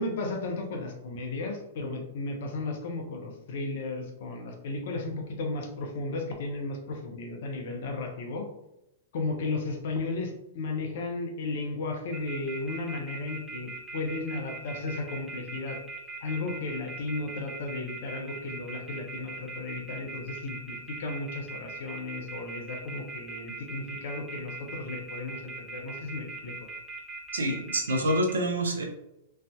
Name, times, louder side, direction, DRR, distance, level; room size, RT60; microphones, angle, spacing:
voice 1, 0.0-8.5 9.1-15.8 16.2-26.5, left 3 dB, 60° left, 3 dB, 0.7 m, -34 dB
sound 1, 12.1-28.3, right 4 dB, 15° right, 0.8 m, -40 dB
voice 2, 27.3-28.8, right 1 dB, 80° right, 2 dB, 0.6 m, -27 dB
3.4 x 2.6 x 2.2 m, 0.85 s
hypercardioid pair, 110°, 0 cm